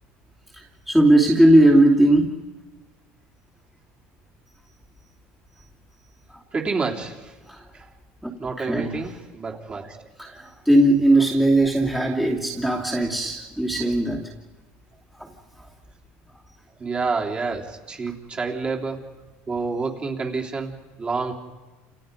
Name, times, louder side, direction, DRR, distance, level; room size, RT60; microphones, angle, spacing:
voice 1, 0.9-2.2 6.3-6.4 7.5-7.6 8.2-8.3 8.6-9.0 10.2-14.3 15.2-15.3, right 1 dB, ahead, -3 dB, 2.8 m, -18 dB
voice 2, 6.5-7.3 7.7-7.9 8.4-10.1 16.8-19.1 19.5-21.3, right 4 dB, 20° right, 0 dB, 3.3 m, -28 dB
29.5 x 29.0 x 5.3 m, 1.2 s
cardioid pair, 145°, 5 cm